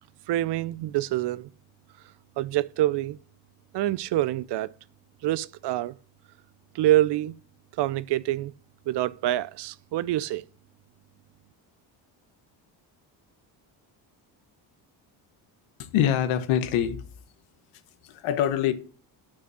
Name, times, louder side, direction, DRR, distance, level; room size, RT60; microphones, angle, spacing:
voice 1, 0.3-1.5 2.4-3.2 3.7-4.7 5.2-5.9 6.7-7.3 7.8-8.5 8.9-10.4, right 14 dB, 55° right, 0.5 m, -26 dB
voice 2, 15.8-17.0 18.0-18.7, left 10 dB, 80° left, 1.1 m, -24 dB
6.3 x 6.1 x 6.1 m
supercardioid pair, 75°, 49 cm